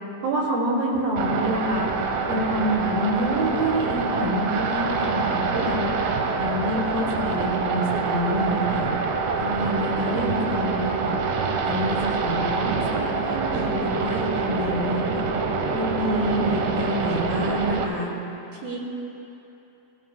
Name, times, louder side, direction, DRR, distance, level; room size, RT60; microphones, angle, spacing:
voice 1, 0.2-1.9 2.3-5.9 6.4-8.9 9.4-11.2 11.6-15.3 15.7-18.1 18.6-18.8, right 1 dB, 55° right, -3 dB, 3.4 m, -27 dB
sound 1, 1.2-17.8, right 4 dB, 85° right, 3.4 m, -26 dB
22.0 x 16.0 x 2.2 m, 3.0 s
omnidirectional pair, 5.5 m